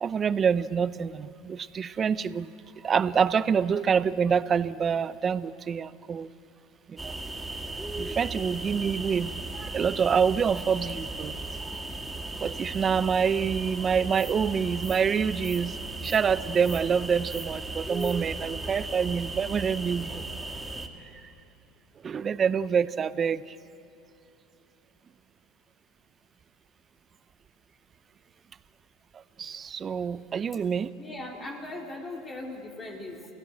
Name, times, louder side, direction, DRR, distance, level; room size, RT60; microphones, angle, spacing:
voice 1, 0.0-2.5 2.8-6.3 6.9-7.1 8.0-11.4 12.4-15.8 16.0-20.2 22.0-23.5 29.4-30.9, right 6 dB, 30° right, 17 dB, 0.7 m, -26 dB
sound 1, 7.0-20.9, right 2 dB, 10° right, 1.9 m, -36 dB
voice 2, 31.0-33.3, left 2 dB, 25° left, 1 dB, 3.5 m, -39 dB
29.0 x 16.5 x 7.7 m, 2.8 s
hypercardioid pair, 90°, 0 cm